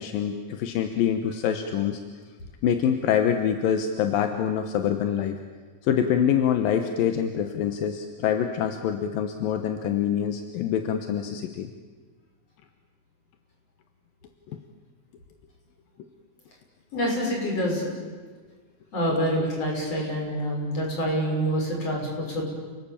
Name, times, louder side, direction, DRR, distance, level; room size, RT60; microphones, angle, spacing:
voice 1, 0.0-2.0 2.6-5.4 5.8-11.7 14.5-14.6, left 9 dB, 80° left, 6 dB, 2.9 m, -25 dB
voice 2, 16.9-17.9 18.9-22.5, equal, 40° left, 0 dB, 7.0 m, -26 dB
29.0 x 19.5 x 8.8 m, 1.4 s
omnidirectional pair, 4.1 m